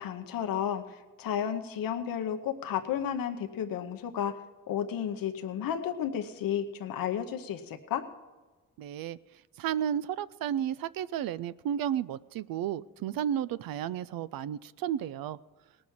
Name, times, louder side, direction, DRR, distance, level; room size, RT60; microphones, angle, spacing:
voice 1, 0.0-4.4 4.7-8.1, left 9 dB, 80° left, 5 dB, 0.9 m, -32 dB
voice 2, 8.8-9.2 9.6-15.4, right 10 dB, 80° right, 16 dB, 0.5 m, -32 dB
18.5 x 6.3 x 7.2 m, 1.3 s
cardioid pair, 70°, 34 cm